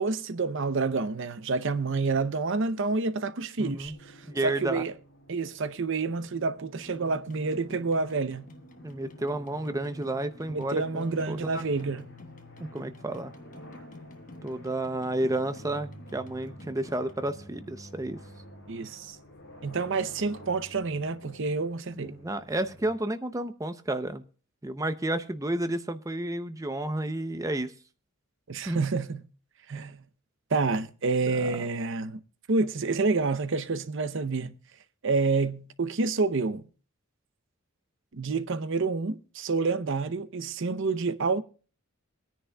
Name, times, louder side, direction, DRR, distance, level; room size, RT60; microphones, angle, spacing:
voice 1, 0.0-4.1 4.4-4.9 5.3-8.5 10.5-12.1 18.7-19.2 19.6-22.2 28.5-29.3 29.7-30.0 30.5-32.2 32.5-34.6 35.0-36.7 38.1-41.4, right 4 dB, 60° right, 0.7 m, -28 dB
sound 1, 3.6-22.9, equal, 55° left, 4.9 m, -50 dB
voice 2, 3.6-4.0 4.3-4.8 8.8-11.6 12.7-13.3 14.4-18.2 22.0-24.2 24.6-27.7 28.7-28.8 31.3-31.5, right 1 dB, 15° right, 0.6 m, -31 dB
sound 2, 6.8-17.1, left 1 dB, 35° left, 1.2 m, -50 dB
23.0 x 10.0 x 2.3 m
head